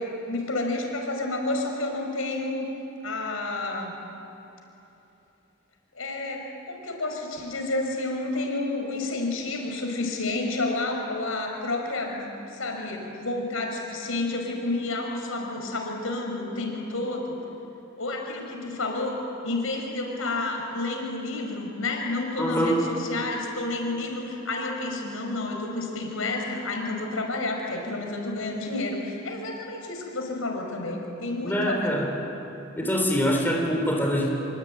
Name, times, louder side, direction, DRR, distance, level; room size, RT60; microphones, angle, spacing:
voice 1, 0.0-2.7 3.0-3.9 5.9-17.4 18.0-19.2 19.4-32.0, left 2 dB, 85° left, 1 dB, 5.7 m, -30 dB
voice 2, 22.4-22.8 31.4-32.1 32.8-34.3, equal, 10° left, 0 dB, 4.1 m, -24 dB
26.0 x 24.5 x 9.4 m, 3.0 s
head